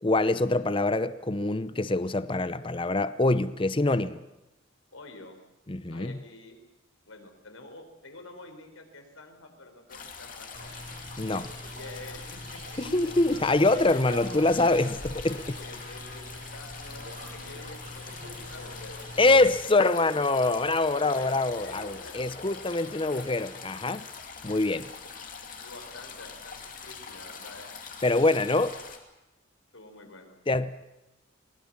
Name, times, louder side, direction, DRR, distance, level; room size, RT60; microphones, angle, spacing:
voice 1, 0.0-4.2 5.7-6.2 11.2-11.5 12.8-15.4 19.2-24.0 24.4-24.9 28.0-28.8 30.5-30.9, left 2 dB, 25° left, 0.7 m, -25 dB
voice 2, 4.9-5.4 5.9-6.6 7.0-10.7 11.5-12.8 13.7-14.2 15.4-19.0 20.9-22.3 24.7-25.1 25.6-27.7 29.7-30.3, left 2 dB, 80° left, 4.3 m, -47 dB
sound 1, 9.9-29.0, left 5 dB, 40° left, 2.6 m, -44 dB
sound 2, 10.5-19.6, right 1 dB, 60° right, 4.3 m, -44 dB
sound 3, 12.4-23.2, left 2 dB, 60° left, 7.1 m, -50 dB
23.0 x 19.5 x 7.4 m
head